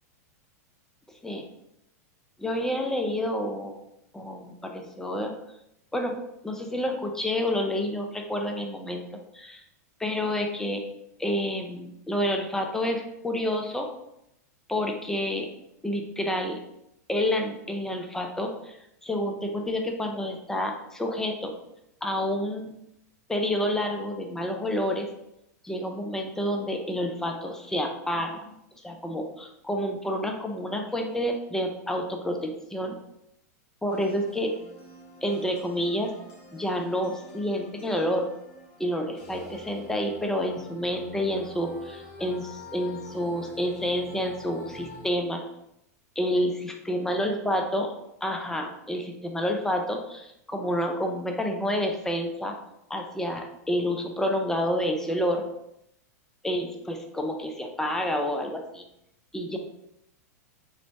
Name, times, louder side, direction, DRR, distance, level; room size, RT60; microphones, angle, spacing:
voice 1, 2.4-3.8 4.1-5.3 5.9-6.2 6.4-9.1 9.3-9.6 10.0-10.8 11.2-13.9 14.7-15.5 15.8-16.6 17.1-21.5 22.0-22.7 23.3-25.1 25.6-28.6 28.8-33.0 33.8-34.5 35.2-36.1 36.5-38.3 38.8-45.4 46.2-47.9 48.2-52.5 52.9-55.4 56.4-58.8 59.3-59.6, equal, 5° left, 3 dB, 0.4 m, -29 dB
sound 1, 33.9-45.1, left 2 dB, 45° left, 0.6 m, -47 dB
3.0 x 2.1 x 2.6 m, 0.81 s
hypercardioid pair, 105°, 9 cm